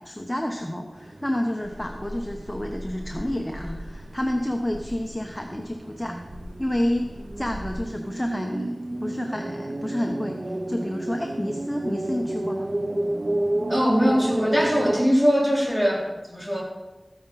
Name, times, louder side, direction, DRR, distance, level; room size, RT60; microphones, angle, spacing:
voice 1, 0.0-6.2 6.6-12.7, left 1 dB, 10° left, 3 dB, 1.0 m, -29 dB
sound 1, 1.0-15.1, right 1 dB, 50° right, 0.9 m, -32 dB
sound 2, 1.6-7.7, equal, 80° right, 1.8 m, -41 dB
voice 2, 13.7-16.6, equal, 10° right, -5 dB, 4.2 m, -21 dB
14.0 x 9.5 x 4.1 m, 1.1 s
wide cardioid pair, 65°, 0 cm